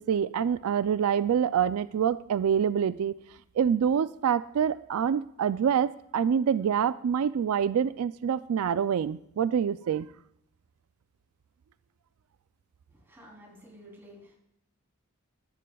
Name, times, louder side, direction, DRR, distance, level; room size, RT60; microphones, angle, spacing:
voice 1, 0.0-3.2 3.6-10.1, right 8 dB, 90° right, 14 dB, 0.4 m, -26 dB
voice 2, 12.9-14.3, equal, 10° right, -2 dB, 3.3 m, -51 dB
17.5 x 11.0 x 2.3 m, 0.76 s
head